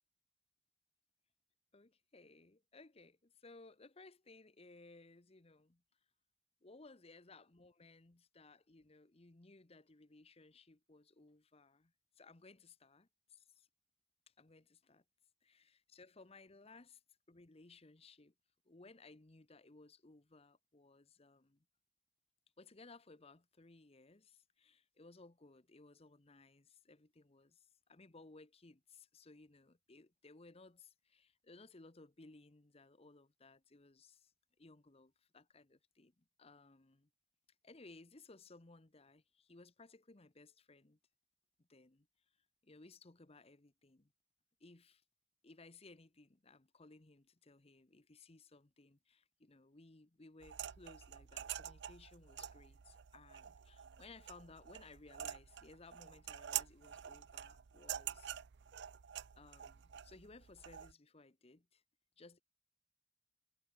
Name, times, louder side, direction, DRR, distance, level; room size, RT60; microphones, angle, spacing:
voice 1, 1.7-5.8 6.6-13.7 14.3-15.0 15.4-17.0 17.3-18.3 18.6-21.6 22.6-34.3 34.6-37.1 37.6-41.0 41.6-42.1 42.6-44.1 44.6-45.0 45.4-58.4 59.4-61.8 62.2-62.4, left 3 dB, 30° left, 1.0 m, -60 dB
sound 1, 50.4-60.9, right 11 dB, 60° right, 0.5 m, -47 dB
head